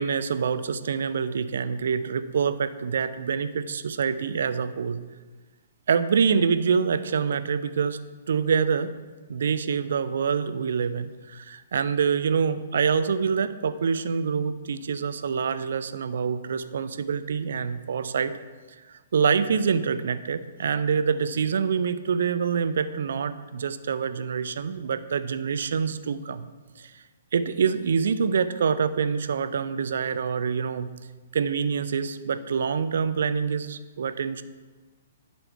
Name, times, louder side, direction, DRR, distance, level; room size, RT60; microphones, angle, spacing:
voice 1, 0.0-5.0 5.9-8.0 8.3-8.9 9.3-18.4 19.1-26.5 26.8-26.9 27.3-30.9 31.3-34.4, right 6 dB, 60° right, 13 dB, 0.4 m, -26 dB
11.0 x 4.2 x 4.5 m, 1.3 s
figure-of-eight pair, 120°, 0 cm